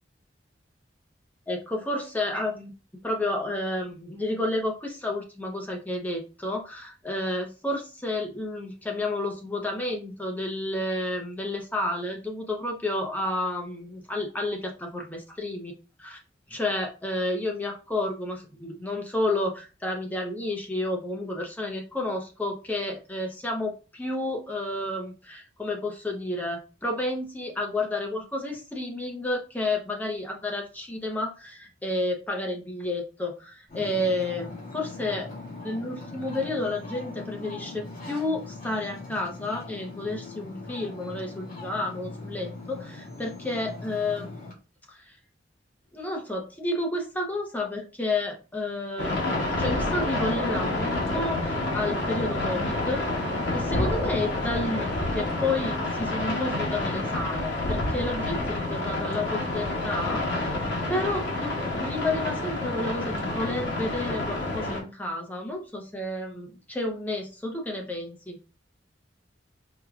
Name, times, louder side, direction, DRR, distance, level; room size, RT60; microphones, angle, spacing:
voice 1, 1.5-2.7 3.0-15.7 16.0-16.2 16.5-35.3 35.6-44.3 44.9-45.2 45.9-53.0 53.5-60.6 60.9-68.4, left 2 dB, 10° left, 2 dB, 0.7 m, -31 dB
Ocean, 33.7-44.5, left 3 dB, 50° left, 1.5 m, -40 dB
sound 1, 49.0-64.8, left 2 dB, 70° left, 0.9 m, -28 dB
4.6 x 2.2 x 2.4 m, 0.33 s
head